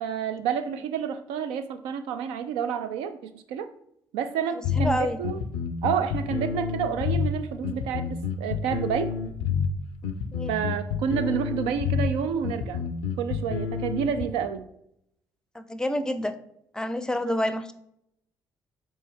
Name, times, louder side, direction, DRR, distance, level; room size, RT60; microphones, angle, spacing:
voice 1, 0.0-3.7 4.1-5.4 5.8-9.1 10.5-12.8 13.2-14.7, right 7 dB, 75° right, 10 dB, 0.4 m, -29 dB
sound 1, 4.6-14.2, left 6 dB, 85° left, 0.4 m, -29 dB
voice 2, 4.7-5.2 10.3-10.5 15.5-16.4 16.7-17.7, left 1 dB, 5° left, 11 dB, 0.5 m, -28 dB
4.1 x 3.2 x 3.5 m, 0.75 s
hypercardioid pair, 45°, 10 cm